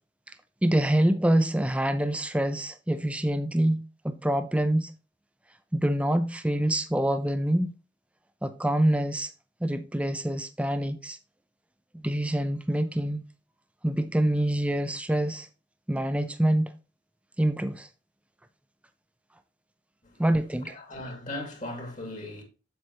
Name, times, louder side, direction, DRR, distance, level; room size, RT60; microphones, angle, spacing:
voice 1, 0.6-4.9 5.7-7.7 8.4-9.3 9.6-11.2 11.9-13.2 13.8-15.5 15.9-16.7 17.4-17.9 20.2-20.8, right 1 dB, 5° right, 0.5 m, -26 dB
voice 2, 20.6-22.4, left 1 dB, 40° left, 2.2 m, -38 dB
7.4 x 6.8 x 2.9 m
head